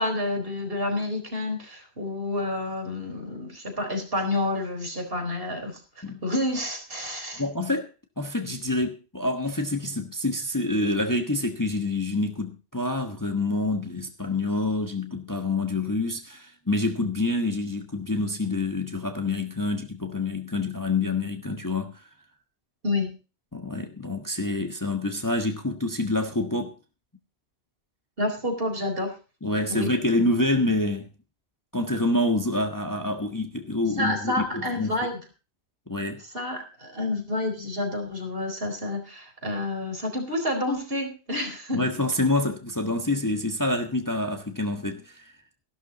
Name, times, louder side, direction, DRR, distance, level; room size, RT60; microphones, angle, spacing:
voice 1, 0.0-7.4 22.8-23.2 28.2-29.1 29.7-29.9 34.0-35.2 36.3-41.8, left 2 dB, 55° right, 4.5 m, -29 dB
voice 2, 7.4-7.9 8.2-22.1 23.5-26.7 29.4-31.1 31.7-34.9 35.9-36.2 41.7-45.3, left 2 dB, 15° left, 1.3 m, -27 dB
15.0 x 12.0 x 4.1 m
omnidirectional pair, 1.2 m